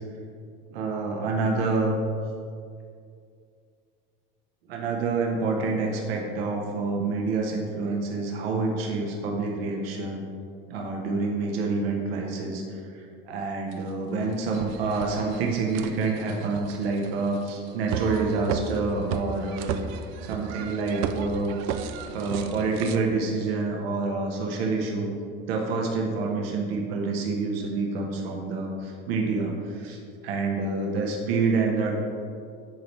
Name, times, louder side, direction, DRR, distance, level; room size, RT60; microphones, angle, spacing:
voice 1, 0.7-1.9 4.7-10.2 10.7-19.7 20.2-21.5 22.1-25.1 25.5-30.0 30.2-32.0, right 3 dB, 85° right, 0 dB, 1.1 m, -27 dB
sound 1, 13.7-13.8 14.3-23.0, right 7 dB, 60° right, 0.5 m, -34 dB
10.5 x 4.0 x 3.2 m, 2.3 s
hypercardioid pair, 80°, 30 cm